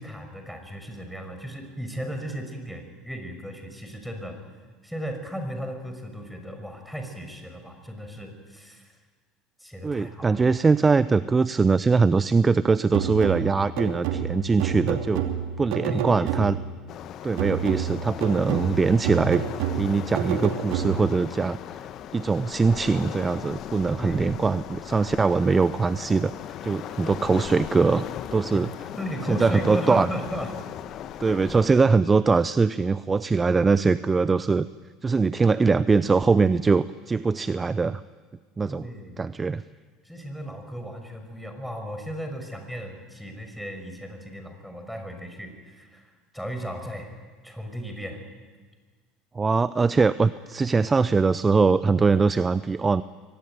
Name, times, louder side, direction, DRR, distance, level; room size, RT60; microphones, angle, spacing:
voice 1, 0.0-4.4 4.8-9.0 9.6-10.4 15.9-16.5 24.0-24.2 28.5-28.7 29.0-30.5 38.6-39.2 40.0-46.1 46.3-47.1 47.4-48.2, equal, ahead, 5 dB, 5.7 m, -36 dB
voice 2, 9.8-15.2 15.6-16.6 17.2-19.4 19.7-21.6 22.1-26.3 26.6-28.7 29.3-30.1 31.2-34.7 35.0-38.0 38.6-38.8 39.2-39.6 49.3-53.0, right 4 dB, 20° right, 16 dB, 0.6 m, -22 dB
sound 1, 12.9-16.8 17.4-21.3, right 8 dB, 65° right, 2.5 m, -29 dB
Waves surf, 16.9-31.7, left 11 dB, 50° left, 1.2 m, -38 dB
23.5 x 18.5 x 9.2 m, 1.5 s
hypercardioid pair, 75°, 0 cm